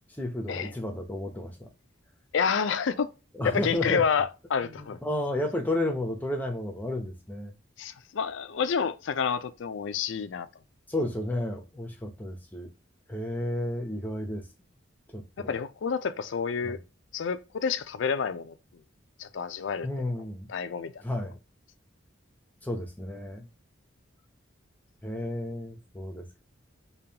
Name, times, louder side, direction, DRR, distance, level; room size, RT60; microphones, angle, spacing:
voice 1, 0.1-1.7 3.3-4.0 4.6-7.5 10.9-12.7 13.1-14.5 15.1-15.5 16.6-16.8 19.8-20.5 21.0-21.4 22.6-23.5 25.0-26.4, left 1 dB, 10° left, 0.7 m, -32 dB
voice 2, 2.3-3.1 3.4-5.0 7.8-10.5 15.4-16.8 17.1-18.6 19.2-19.9 20.5-21.0, left 6 dB, 70° left, 0.4 m, -29 dB
5.2 x 2.3 x 2.8 m
head